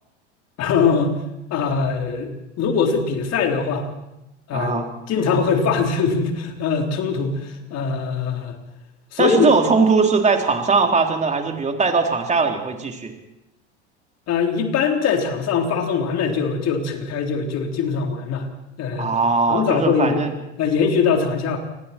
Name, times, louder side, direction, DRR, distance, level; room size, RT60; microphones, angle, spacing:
voice 1, 0.6-1.2 1.5-2.3 2.6-3.9 4.5-8.5 9.1-9.5 14.3-18.5 18.8-19.2 19.5-20.2 20.6-21.6, left 5 dB, 45° left, 3 dB, 3.9 m, -22 dB
voice 2, 4.5-4.9 9.2-13.1 19.0-20.3, right 4 dB, 20° right, 3 dB, 3.6 m, -20 dB
28.5 x 20.0 x 4.5 m, 0.91 s
hypercardioid pair, 95°, 35 cm